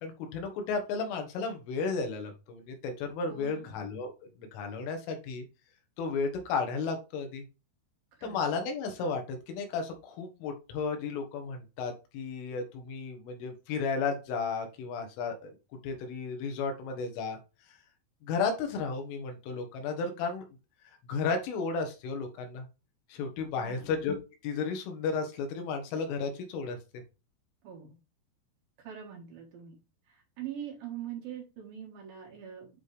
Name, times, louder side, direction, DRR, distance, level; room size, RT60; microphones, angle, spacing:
voice 1, 0.0-4.1 4.4-5.5 6.0-7.4 8.2-15.6 15.8-17.4 18.2-20.4 21.1-22.7 23.1-24.2 24.4-26.8, left 4 dB, 85° left, 4 dB, 3.9 m, -33 dB
voice 2, 3.3-3.7 8.2-8.4 23.6-23.9 27.6-27.9 28.8-29.8 30.1-32.7, right 9 dB, 60° right, -1 dB, 2.9 m, -43 dB
10.0 x 4.1 x 3.3 m, 0.30 s
omnidirectional pair, 5.5 m